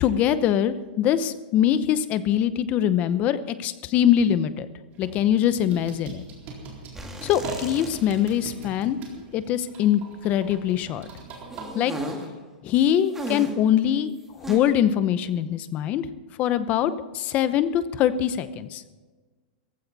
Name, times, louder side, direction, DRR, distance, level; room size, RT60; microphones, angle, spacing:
voice 1, 0.0-4.7 5.0-6.2 7.2-9.0 9.3-11.1 11.7-11.9 12.6-14.1 14.4-16.0 16.4-18.8, left 10 dB, 30° left, 13 dB, 0.8 m, -23 dB
sound 1, 4.9-11.6, right 4 dB, 30° right, 4.0 m, -41 dB
sound 2, 6.9-8.4 8.6-8.7 11.5-12.3 13.1-13.7 14.4-14.6, right 1 dB, 5° right, 2.0 m, -34 dB
17.0 x 15.0 x 4.1 m, 1.3 s
supercardioid pair, 160°, 5 cm